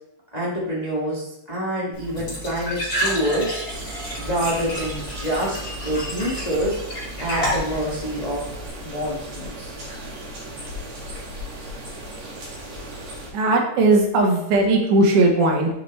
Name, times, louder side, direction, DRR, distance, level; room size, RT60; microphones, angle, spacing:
voice 1, 0.3-3.6 4.2-5.6 5.8-6.8 7.2-8.5 8.8-9.7, equal, 85° left, -6 dB, 0.3 m, -26 dB
Glass / Trickle dribble / Fill (with liquid), 1.9-8.7, equal, 25° left, 2.3 m, -30 dB
sound 1, 3.7-13.3, equal, 60° right, 3.1 m, -36 dB
voice 2, 13.3-15.7, right 2 dB, 80° right, 2 dB, 2.5 m, -18 dB
6.8 x 5.8 x 3.1 m, 0.80 s
omnidirectional pair, 3.6 m